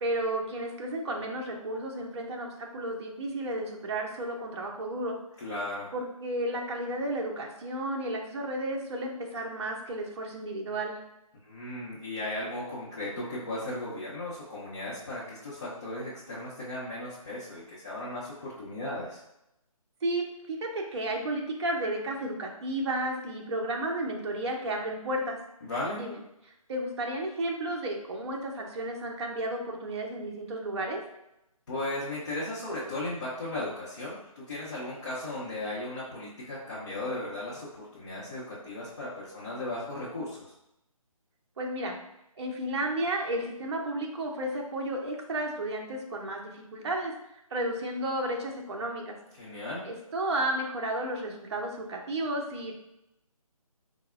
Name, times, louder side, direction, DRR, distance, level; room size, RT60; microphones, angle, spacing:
voice 1, 0.0-5.2 5.9-11.0 20.0-25.4 25.9-26.2 26.7-31.0 41.6-42.0 42.4-47.1 47.5-49.2 49.8-52.7, right 1 dB, 50° right, 1 dB, 0.5 m, -32 dB
voice 2, 5.4-5.9 11.4-19.2 25.6-26.0 31.7-40.5 49.4-49.9, left 1 dB, 35° left, -9 dB, 0.6 m, -36 dB
4.1 x 2.0 x 2.3 m, 0.85 s
figure-of-eight pair, 160°, 19 cm